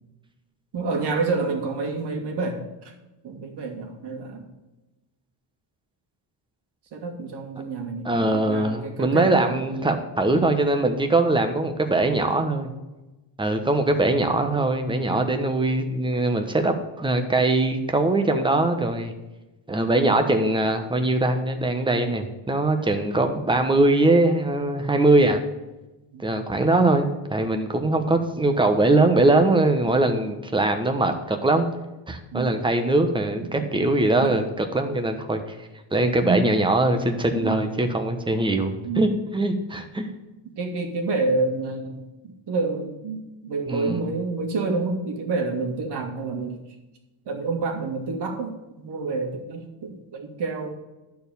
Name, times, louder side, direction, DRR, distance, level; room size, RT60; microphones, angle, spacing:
voice 1, 0.7-2.9 3.2-4.5 6.9-9.6 13.6-13.8 26.1-26.3 32.3-32.5 33.4-33.9 34.2-34.4 36.2-36.5 37.3-37.9 38.8-39.2 40.6-46.7 47.3-50.7, right 3 dB, 60° right, 2 dB, 2.2 m, -29 dB
voice 2, 8.0-12.7 13.4-19.1 19.7-25.4 26.2-31.7 32.1-35.6 35.9-40.1 43.7-44.0, right 2 dB, 10° right, 6 dB, 1.0 m, -22 dB
11.5 x 4.7 x 7.0 m, 1.0 s
cardioid pair, 145°, 45 cm